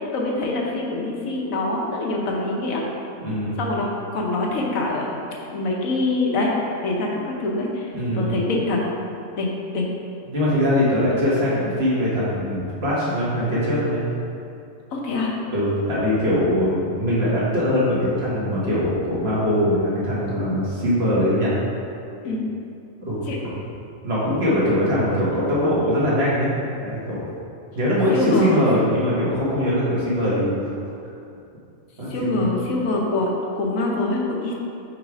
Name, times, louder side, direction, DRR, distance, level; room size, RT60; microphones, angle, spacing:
voice 1, 0.1-2.8 3.6-5.2 5.5-6.5 6.8-8.8 9.4-9.9 14.9-15.3 22.2-22.4 23.3-23.4 28.1-28.6 32.1-34.5, left 2 dB, 70° left, -1 dB, 1.2 m, -24 dB
voice 2, 3.2-3.6 7.9-8.3 10.3-14.0 15.5-21.5 23.0-23.5 24.0-26.5 26.8-27.2 27.7-30.5 32.0-32.4, left 1 dB, 45° right, -8 dB, 1.7 m, -22 dB
4.8 x 4.6 x 4.9 m, 2.6 s
omnidirectional pair, 1.5 m